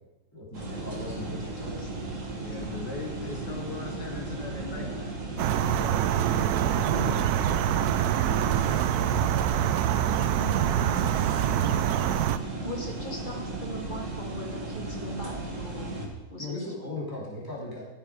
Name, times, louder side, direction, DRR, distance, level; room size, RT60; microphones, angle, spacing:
voice 1, 0.3-1.8 5.6-6.1 9.9-10.2 13.2-13.4 15.1-15.3 16.4-17.8, left 2 dB, 10° left, -6 dB, 2.9 m, -39 dB
sound 1, 0.5-16.1, right 2 dB, 45° right, 2.1 m, -36 dB
sound 2, 1.7-1.8 2.1-2.2 2.6-2.7 4.1-4.9 5.5-5.7 6.0-6.1 6.4-6.5 6.9-7.0 8.5-8.7 9.0-9.1 10.4-10.5 10.8-10.9 11.4-11.5 12.9-13.6 14.2-14.5 14.8-14.9 15.2-15.3 15.6-15.7, right 6 dB, 90° right, 1.5 m, -43 dB
voice 2, 2.2-5.1, left 3 dB, 75° left, 1 dB, 2.4 m, -40 dB
sound 3, 5.4-12.4, right 11 dB, 70° right, 1.0 m, -25 dB
voice 3, 6.7-7.3 10.4-11.1 12.6-16.0 16.3-17.0, equal, 30° left, 1 dB, 1.3 m, -39 dB
14.0 x 7.2 x 4.8 m, 1.1 s
omnidirectional pair, 1.9 m